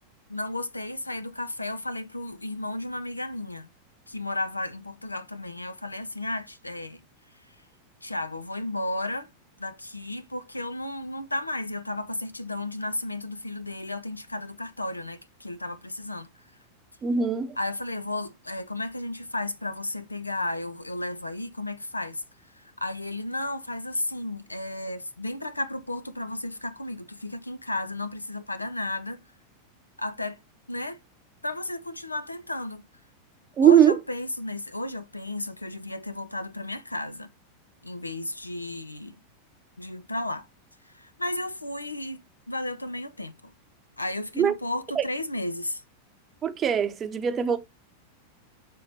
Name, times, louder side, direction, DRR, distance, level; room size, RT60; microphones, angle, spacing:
voice 1, 0.3-3.7 4.1-7.0 8.0-9.3 9.6-16.3 17.6-22.2 22.6-29.2 30.0-30.4 30.7-31.0 31.4-32.8 33.6-37.3 37.8-39.1 39.8-40.5 40.9-42.2 42.5-43.5 44.0-45.8, left 2 dB, 85° left, 0.5 m, -33 dB
voice 2, 17.0-17.6 33.6-34.0 44.4-44.5 45.0-45.1 46.4-47.6, right 8 dB, 25° right, 0.7 m, -21 dB
6.6 x 3.6 x 4.1 m
figure-of-eight pair, 90°, 0 cm